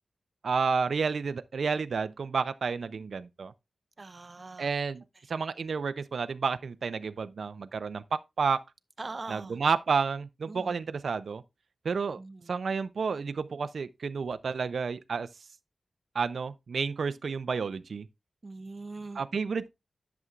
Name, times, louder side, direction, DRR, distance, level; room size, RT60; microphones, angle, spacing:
voice 1, 0.4-3.5 4.6-5.0 5.3-8.6 9.3-11.4 11.8-12.2 12.5-15.3 16.1-18.1 19.2-19.7, right 5 dB, 70° right, 0.4 m, -30 dB
voice 2, 4.0-4.7 9.0-9.6 10.5-10.8 12.2-12.6 18.4-19.2, right 3 dB, 35° right, 0.7 m, -42 dB
11.0 x 7.0 x 2.4 m
wide cardioid pair, 115°, 0 cm